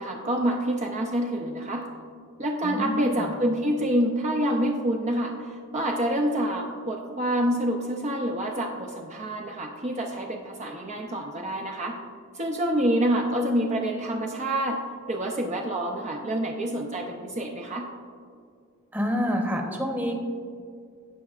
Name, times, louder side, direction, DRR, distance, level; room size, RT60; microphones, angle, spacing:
voice 1, 0.0-1.9 2.4-12.0 12.3-14.8 15.1-17.8, right 1 dB, 35° right, 0 dB, 0.6 m, -27 dB
voice 2, 2.6-3.3 18.9-20.2, equal, 10° right, 1 dB, 1.0 m, -27 dB
17.5 x 5.9 x 2.5 m, 2.2 s
head